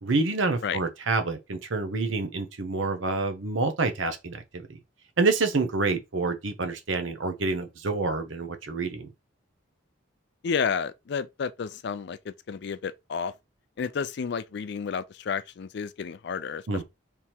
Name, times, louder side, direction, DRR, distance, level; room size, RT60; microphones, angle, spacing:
voice 1, 0.0-4.7 5.2-9.1 16.7-16.8, right 3 dB, 75° right, 0.8 m, -27 dB
voice 2, 10.4-13.3 13.8-16.6, left 6 dB, 60° left, 0.4 m, -31 dB
3.5 x 3.0 x 4.3 m
head